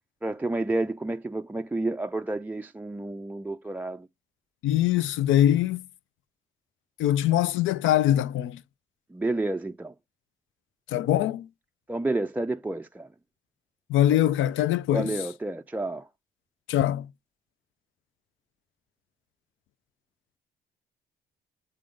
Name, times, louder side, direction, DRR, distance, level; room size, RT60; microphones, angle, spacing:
voice 1, 0.2-4.1 9.1-9.9 11.9-13.1 14.9-16.1, right 2 dB, 10° right, 0.3 m, -30 dB
voice 2, 4.6-5.9 7.0-8.6 10.9-11.5 13.9-15.2 16.7-17.1, left 12 dB, 75° left, 0.4 m, -23 dB
7.7 x 3.6 x 4.9 m
cardioid pair, 90°, 20 cm